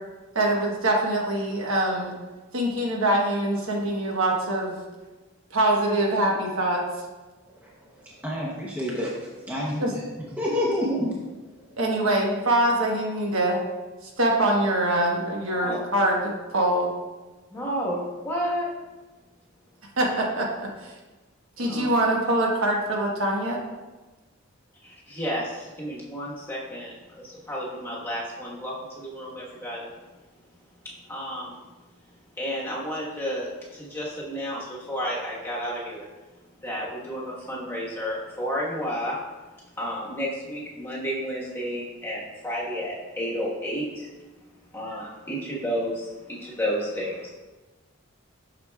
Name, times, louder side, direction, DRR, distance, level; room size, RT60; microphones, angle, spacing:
voice 1, 0.3-2.1 2.5-4.8 5.5-6.8 9.8-9.9 11.8-13.6 14.0-16.9 20.0-20.9 21.6-23.6, right 1 dB, 70° right, 0 dB, 1.1 m, -24 dB
voice 2, 8.2-9.1 9.5-10.0 10.4-11.2, left 1 dB, 5° right, -5 dB, 0.7 m, -27 dB
voice 3, 17.5-18.7 21.6-21.9 24.8-29.9 31.1-31.6 32.4-36.0 36.6-39.2 39.8-44.1 44.7-47.3, equal, 10° left, -5 dB, 1.2 m, -31 dB
7.5 x 6.1 x 2.3 m, 1.2 s
head